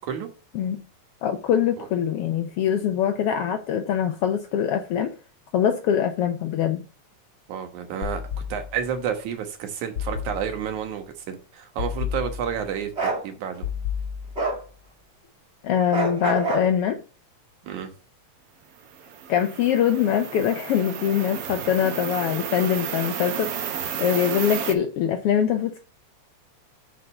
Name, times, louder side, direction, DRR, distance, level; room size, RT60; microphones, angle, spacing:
voice 1, 1.2-5.1 5.5-6.8 15.6-17.0 19.3-25.8, left 9 dB, 75° left, 1.3 m, -23 dB
voice 2, 7.5-8.2 8.5-12.9 13.2-13.7 17.6-17.9, right 8 dB, 90° right, 2.7 m, -30 dB
sound 1, 8.0-9.0 10.0-10.9 11.8-12.9 13.6-14.7, left 8 dB, 55° left, 1.8 m, -32 dB
Bark, 12.9-13.2 14.3-14.6 15.9-16.7, right 3 dB, 25° right, 1.8 m, -25 dB
sound 2, 18.8-24.7, right 8 dB, 65° right, 1.5 m, -32 dB
6.5 x 5.0 x 6.8 m
omnidirectional pair, 3.3 m